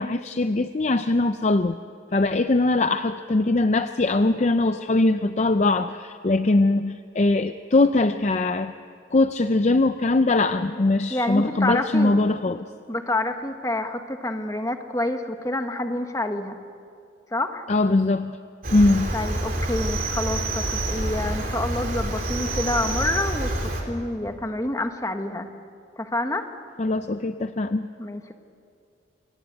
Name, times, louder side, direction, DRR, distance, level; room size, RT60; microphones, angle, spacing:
voice 1, 0.0-1.8 2.1-8.7 9.1-12.7 17.7-18.4 18.7-19.1 26.8-27.9, left 2 dB, 35° left, 10 dB, 0.5 m, -21 dB
voice 2, 11.1-12.2 12.9-16.6 17.3-17.7 19.1-25.5 26.0-26.5 28.0-28.3, left 1 dB, 15° left, 6 dB, 1.2 m, -28 dB
Cricket, 18.6-23.8, right 1 dB, 45° right, 3.4 m, -27 dB
26.5 x 18.0 x 8.1 m, 2.4 s
head